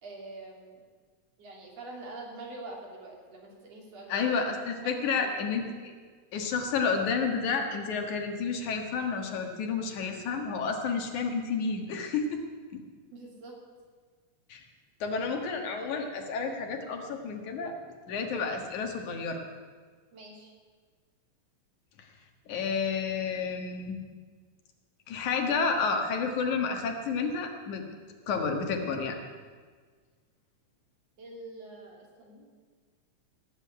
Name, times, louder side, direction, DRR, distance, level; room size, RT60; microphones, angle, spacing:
voice 1, 0.0-0.8 1.4-4.3 5.0-5.3 13.1-13.6 20.1-20.5 31.2-32.5, right 2 dB, 55° right, -1 dB, 3.8 m, -45 dB
voice 2, 4.1-5.9 6.3-12.4 12.7-12.8 14.5-14.6 15.0-17.8 18.1-19.4 22.5-24.0 25.1-27.8 28.3-29.2, left 5 dB, 80° left, 4 dB, 3.0 m, -30 dB
17.5 x 7.8 x 9.7 m, 1.6 s
omnidirectional pair, 3.4 m